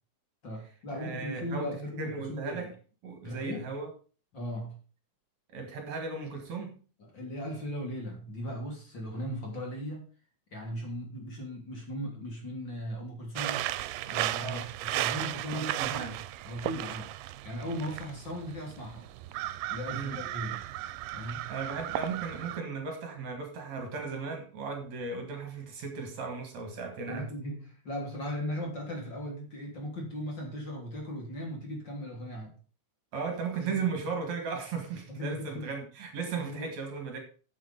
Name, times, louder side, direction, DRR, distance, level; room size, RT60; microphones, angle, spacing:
voice 1, 0.4-2.7 3.2-3.7 4.3-4.8 7.0-10.1 10.5-13.7 14.1-16.1 16.5-17.1 17.4-19.1 19.7-20.6 21.1-21.5 27.1-32.5 33.6-33.9 35.1-35.6 36.3-36.7, equal, 35° left, 3.5 m, -38 dB
voice 2, 1.0-1.7 2.0-2.7 3.0-3.9 5.5-6.8 14.4-14.7 15.5-16.2 19.9-20.2 21.5-27.3 33.1-37.2, right 5 dB, 60° right, 3.1 m, -36 dB
sound 1, 13.4-22.6, right 15 dB, 90° right, 2.2 m, -35 dB
9.2 x 7.9 x 5.4 m
omnidirectional pair, 3.7 m